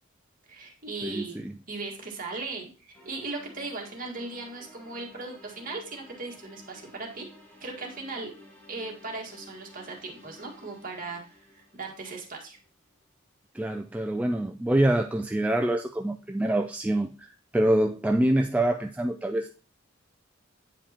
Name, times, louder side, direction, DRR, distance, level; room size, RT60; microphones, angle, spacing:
voice 1, 0.5-1.4 1.7-7.3 7.6-8.3 8.7-12.6, right 3 dB, 45° right, 0 dB, 1.8 m, -38 dB
voice 2, 1.0-1.5 13.5-19.5, right 1 dB, 5° right, 3 dB, 0.3 m, -26 dB
sound 1, 2.9-12.9, left 1 dB, 10° left, 1.6 m, -54 dB
8.8 x 5.0 x 2.9 m, 0.36 s
head